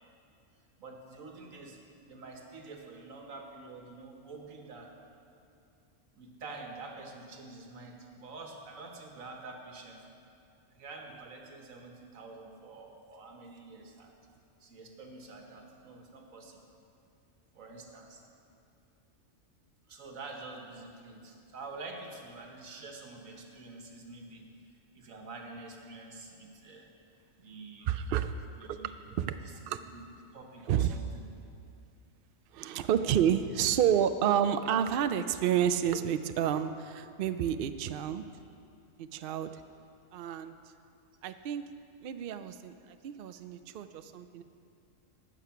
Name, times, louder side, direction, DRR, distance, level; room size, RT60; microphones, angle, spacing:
voice 1, 0.8-1.8 2.1-4.9 6.2-10.0 10.7-14.1 14.6-16.6 17.5-18.2 19.9-24.5 24.9-26.9 27.4-27.9 28.6-28.9 29.3-30.0 30.3-31.2, right 3 dB, 85° right, 2 dB, 1.6 m, -47 dB
voice 2, 27.9-28.3 28.7-28.8 29.1-29.4 29.7-29.8 30.7-31.0 32.5-38.2 39.0-39.6 40.1-40.6 41.2-41.7 42.0-44.4, right 9 dB, 65° right, 10 dB, 0.6 m, -30 dB
15.5 x 6.3 x 5.8 m, 2.6 s
omnidirectional pair, 1.4 m